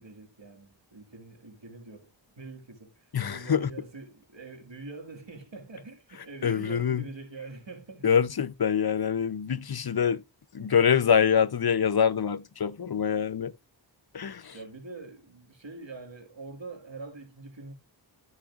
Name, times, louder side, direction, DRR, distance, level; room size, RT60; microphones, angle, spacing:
voice 1, 0.0-8.1 14.5-17.7, right 3 dB, 90° right, 1.8 m, -44 dB
voice 2, 3.1-3.7 6.4-7.0 8.0-10.2 10.5-13.5 14.1-14.6, left 7 dB, 60° left, 0.6 m, -25 dB
12.5 x 6.3 x 2.4 m
wide cardioid pair, 40°, 44 cm